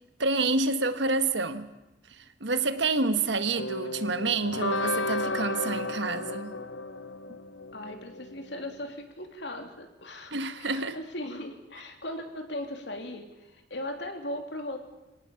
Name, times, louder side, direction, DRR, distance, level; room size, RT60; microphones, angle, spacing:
voice 1, 0.2-1.7 2.1-6.6 10.3-11.0, right 3 dB, 70° right, 1.5 m, -28 dB
sound 1, 3.6-8.5, left 2 dB, 90° left, 1.0 m, -33 dB
voice 2, 7.7-14.8, left 1 dB, 65° left, 3.2 m, -38 dB
25.5 x 18.0 x 7.2 m
head